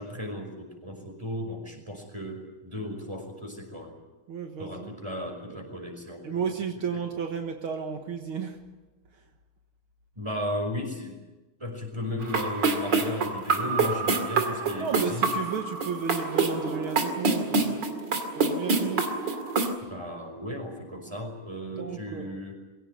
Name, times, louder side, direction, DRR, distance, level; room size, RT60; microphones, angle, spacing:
voice 1, 0.0-3.9 4.6-6.5 6.9-7.0 10.2-11.2 11.6-15.3 19.8-22.5, left 1 dB, 10° right, 3 dB, 5.4 m, -35 dB
voice 2, 4.3-4.9 5.5-5.7 6.2-8.7 9.1-9.2 14.8-17.9 18.3-19.1 21.8-22.4, right 6 dB, 70° right, 4 dB, 2.2 m, -33 dB
sound 1, 12.2-19.7, right 4 dB, 55° right, 3.0 m, -27 dB
23.0 x 17.0 x 9.5 m, 1.2 s
omnidirectional pair, 2.4 m